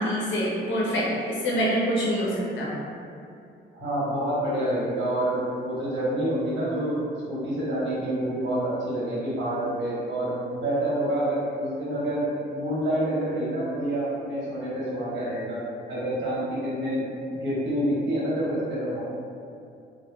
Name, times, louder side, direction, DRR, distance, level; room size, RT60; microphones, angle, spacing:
voice 1, 0.0-2.7, equal, 70° left, -5 dB, 0.7 m, -26 dB
voice 2, 3.7-7.0 7.3-15.6 15.9-17.0 17.3-19.0, right 1 dB, 65° right, -9 dB, 1.1 m, -27 dB
2.7 x 2.2 x 2.2 m, 2.5 s
cardioid pair, 90°, 20 cm